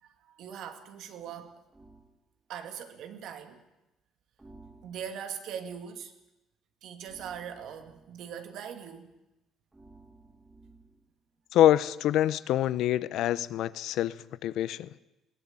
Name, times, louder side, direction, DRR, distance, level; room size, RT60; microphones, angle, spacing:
voice 1, 0.0-1.5 2.5-3.6 4.8-6.1 6.8-9.1, right 8 dB, 75° right, 7 dB, 2.5 m, -41 dB
sound 1, 1.7-2.2 4.4-5.3 7.0-8.2 9.7-11.1, right 2 dB, 15° right, 3.6 m, -55 dB
voice 2, 11.5-14.9, left 12 dB, 75° left, 17 dB, 0.8 m, -25 dB
21.0 x 17.0 x 8.9 m, 0.96 s
cardioid pair, 95°, 0 cm